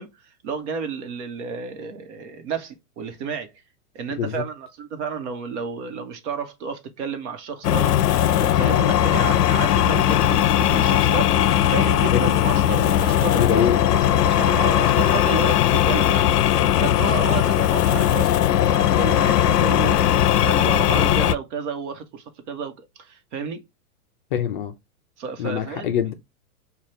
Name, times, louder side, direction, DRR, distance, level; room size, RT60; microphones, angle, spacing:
voice 1, 0.0-3.5 3.9-11.3 11.7-13.7 14.2-23.6 25.2-25.9, right 5 dB, 50° right, 1.2 m, -32 dB
sound 1, 7.6-21.4, left 11 dB, 80° left, 0.5 m, -19 dB
voice 2, 13.4-13.9 16.9-17.0 24.3-24.7 25.4-26.1, left 8 dB, 35° left, 0.4 m, -24 dB
5.2 x 2.4 x 3.1 m
hypercardioid pair, 130°, 46 cm